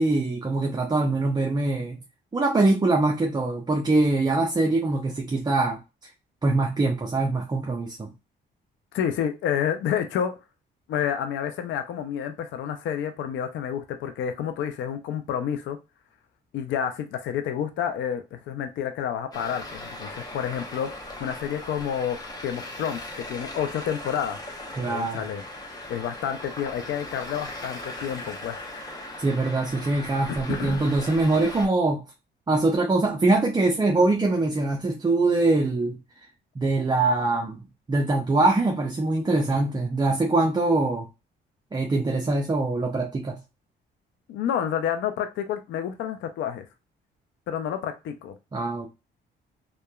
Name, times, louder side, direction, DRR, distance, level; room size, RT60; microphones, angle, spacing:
voice 1, 0.0-2.0 2.3-5.8 6.4-8.1 24.7-25.2 29.2-32.0 32.5-36.0 36.6-41.0 41.7-43.4 48.5-48.9, right 2 dB, 20° right, 0 dB, 0.5 m, -23 dB
voice 2, 8.9-10.3 10.9-15.8 16.5-24.4 24.9-25.4 25.9-28.6 30.5-30.9 44.3-46.7 47.5-48.4, left 9 dB, 70° left, 7 dB, 0.4 m, -29 dB
Traffic noise roadway noise, 19.3-31.7, left 1 dB, 20° left, 0.8 m, -39 dB
2.8 x 2.2 x 2.2 m, 0.27 s
cardioid pair, 90°, 20 cm